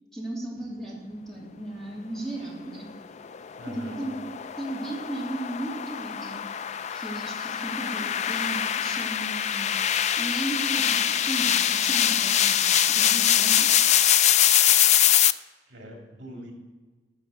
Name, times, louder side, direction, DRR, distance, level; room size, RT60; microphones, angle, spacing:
voice 1, 0.1-2.9 3.7-4.2 4.6-6.4 6.9-9.7 10.2-13.7, right 1 dB, 5° left, -4 dB, 2.8 m, -35 dB
sound 1, 3.2-15.3, left 10 dB, 40° left, 0.3 m, -23 dB
voice 2, 3.6-4.0 15.6-16.5, equal, 65° right, 0 dB, 2.7 m, -42 dB
13.0 x 6.5 x 6.9 m, 1.3 s
head